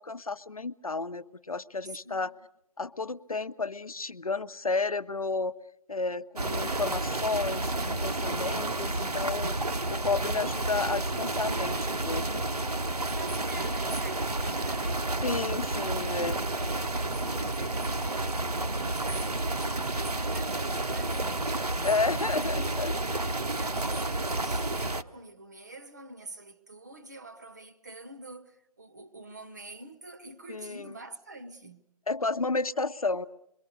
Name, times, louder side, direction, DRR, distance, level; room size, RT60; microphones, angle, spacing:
voice 1, 0.0-2.3 2.8-5.5 5.9-12.5 15.2-16.4 21.8-23.1 30.5-30.9 32.1-33.3, left 3 dB, 65° left, 0.9 m, -32 dB
voice 2, 1.8-2.3 13.0-15.2 16.5-22.7 23.4-31.9, right 2 dB, 30° right, 0.9 m, -46 dB
sound 1, 6.4-25.0, right 2 dB, 75° right, 1.0 m, -30 dB
27.5 x 23.0 x 6.6 m
figure-of-eight pair, 160°, 20 cm